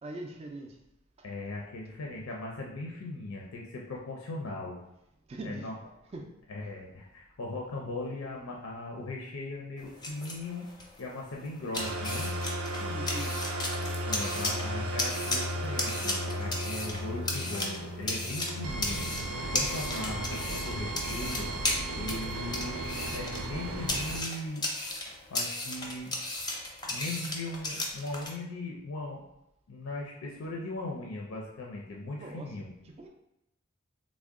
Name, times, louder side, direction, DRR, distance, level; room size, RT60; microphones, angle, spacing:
voice 1, 0.0-0.8 1.2-1.3 5.3-5.7 6.1-6.4 12.7-13.4 32.2-33.1, right 2 dB, 30° right, 2 dB, 0.3 m, -42 dB
voice 2, 1.2-4.8 5.4-5.7 6.5-10.7 11.0-12.3 14.1-19.0 19.5-21.5 22.0-24.7 25.3-26.1 26.9-29.2 29.7-32.7, left 2 dB, 75° left, -2 dB, 0.5 m, -38 dB
sound 1, 9.8-28.3, left 2 dB, 20° left, 0.5 m, -36 dB
sound 2, 11.7-24.2, right 1 dB, 90° right, 0.5 m, -35 dB
3.6 x 2.1 x 3.5 m, 0.86 s
head